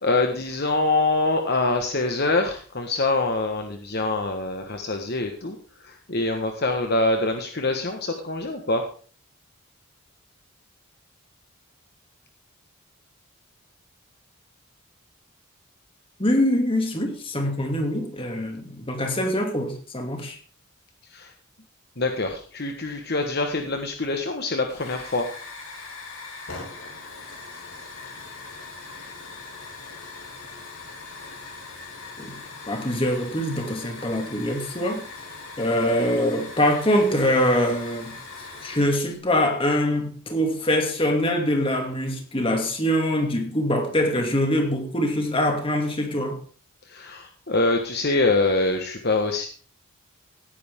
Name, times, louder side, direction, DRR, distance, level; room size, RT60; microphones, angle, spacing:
voice 1, 0.0-8.8 21.1-21.3 22.0-25.3 46.8-49.5, left 2 dB, 50° left, 1.4 m, -25 dB
voice 2, 16.2-20.4 32.2-32.4 32.7-35.0 35.6-38.2 38.6-46.4, equal, 25° left, 2.6 m, -24 dB
Hiss / Fire, 24.7-39.2, left 3 dB, 80° left, 4.5 m, -40 dB
17.5 x 9.9 x 3.7 m
head